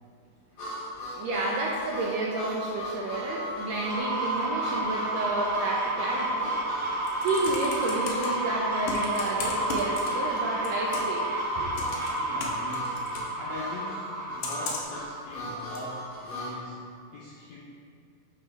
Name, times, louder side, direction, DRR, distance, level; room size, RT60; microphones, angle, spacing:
Harmonica, 0.6-16.6, equal, 50° left, 2.8 m, -38 dB
voice 1, 1.1-6.5 7.2-11.8, right 2 dB, 80° right, -3 dB, 2.2 m, -31 dB
sound 1, 3.9-14.8, right 1 dB, 55° right, 2.0 m, -31 dB
Computer keyboard, 6.8-8.3 8.8-10.4 10.6-11.2 11.7-13.3 14.4-15.0 15.7-15.8, left 4 dB, 70° left, 1.8 m, -36 dB
voice 2, 12.2-17.6, left 2 dB, 90° left, -5 dB, 1.5 m, -42 dB
11.5 x 4.1 x 3.5 m, 2.3 s
omnidirectional pair, 4.1 m